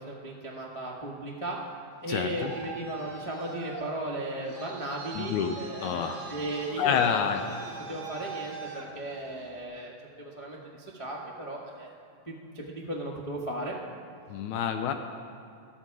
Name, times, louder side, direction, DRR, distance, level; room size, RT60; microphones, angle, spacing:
voice 1, 0.0-1.6 2.0-10.6 11.0-11.9 12.3-13.7, right 1 dB, 35° left, -4 dB, 0.5 m, -36 dB
Traffic noise roadway noise, 1.9-9.6, right 4 dB, 45° right, 1.8 m, -42 dB
voice 2, 2.1-2.5 5.2-5.5 5.8-6.2 6.8-7.4 14.3-14.9, left 8 dB, 80° left, 6 dB, 2.0 m, -28 dB
18.5 x 12.5 x 4.8 m, 2.5 s
omnidirectional pair, 3.5 m